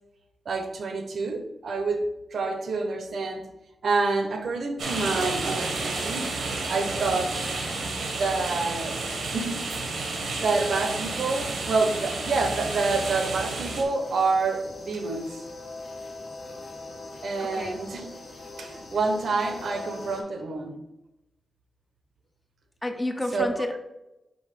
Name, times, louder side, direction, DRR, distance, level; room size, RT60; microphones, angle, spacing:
voice 1, 0.5-2.0 2.3-3.5 3.8-6.3 6.7-7.4 8.0-9.0 9.3-9.6 10.4-15.4 17.2-18.0 18.6-20.8 23.3-23.7, right 3 dB, 65° right, 6 dB, 0.8 m, -27 dB
sound 1, 4.8-13.8, right 3 dB, 85° right, 1.2 m, -31 dB
sound 2, 12.6-20.2, left 2 dB, 65° left, 1.3 m, -41 dB
voice 2, 22.8-23.8, left 1 dB, 10° left, 5 dB, 0.6 m, -30 dB
5.4 x 3.6 x 5.1 m, 0.94 s
wide cardioid pair, 150°, 0 cm